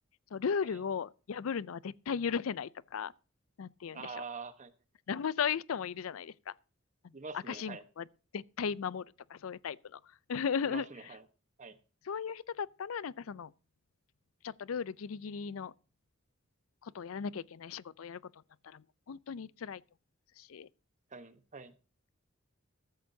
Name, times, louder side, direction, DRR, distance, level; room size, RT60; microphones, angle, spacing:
voice 1, 0.3-3.1 3.6-4.2 5.1-6.5 7.0-8.1 8.3-11.2 12.0-13.5 14.4-15.7 16.8-19.8 20.4-20.7, left 6 dB, 80° left, 0.4 m, -37 dB
voice 2, 3.9-4.7 7.1-7.8 10.6-11.2 11.6-11.8 21.1-21.7, right 4 dB, 35° right, 1.2 m, -45 dB
14.5 x 13.0 x 2.7 m
head